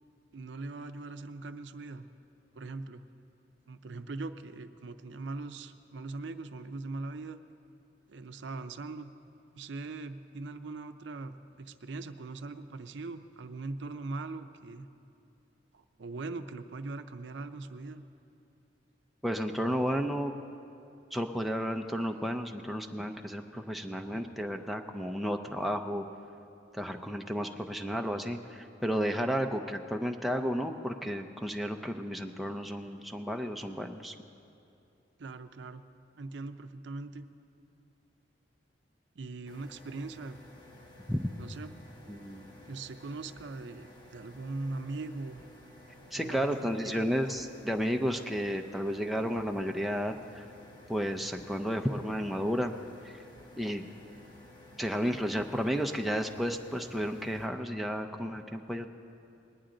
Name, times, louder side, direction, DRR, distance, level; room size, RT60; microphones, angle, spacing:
voice 1, 0.3-2.1 2.5-3.0 3.7-7.4 8.1-9.1 9.5-14.9 15.7-18.0 35.2-35.8 36.2-37.3 37.7-37.9 39.2-40.4 41.4-41.7 42.7-45.4 46.1-47.0, right 3 dB, 70° right, 9 dB, 0.5 m, -41 dB
voice 2, 19.2-20.3 21.1-26.0 26.7-34.1 41.1-41.2 42.1-42.5 46.1-50.5 50.9-52.7 53.0-53.2 53.6-53.8 54.8-58.9, equal, ahead, 3 dB, 0.4 m, -32 dB
sound 1, 39.5-57.5, left 1 dB, 25° left, 1.3 m, -54 dB
20.0 x 10.0 x 3.8 m, 2.7 s
head